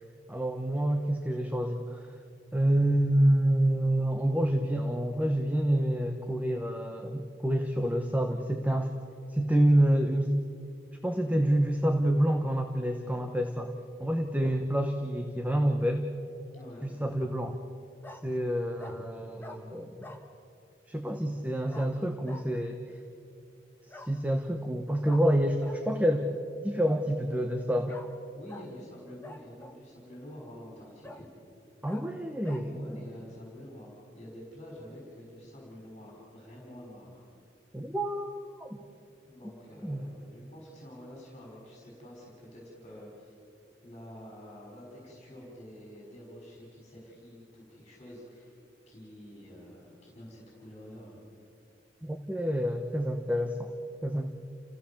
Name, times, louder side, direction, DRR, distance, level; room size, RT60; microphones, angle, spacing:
voice 1, 0.3-2.0 2.5-8.9 9.3-10.3 11.0-13.7 14.0-16.1 16.8-17.6 18.2-20.1 20.9-22.8 23.9-26.3 26.6-28.0 31.8-32.9 37.7-38.3 38.6-38.8 39.8-40.0 52.0-53.7 54.0-54.3, right 1 dB, 10° right, 5 dB, 1.0 m, -27 dB
Bark, 16.3-16.7 18.0-18.2 18.8-19.0 19.4-19.6 20.0-20.2 21.7-21.9 22.2-22.4 23.9-24.1 25.0-25.2 25.6-25.8 27.9-28.1 28.5-28.7 29.2-29.8 30.4-30.5 31.0-31.2 31.9-32.0 32.4-32.6, left 2 dB, 10° left, 1.5 m, -46 dB
voice 2, 16.5-17.0 28.3-31.3 32.7-37.2 39.3-43.3 43.8-48.6 48.9-51.2, equal, 30° left, -3 dB, 5.5 m, -48 dB
30.0 x 16.0 x 7.2 m, 2.6 s
head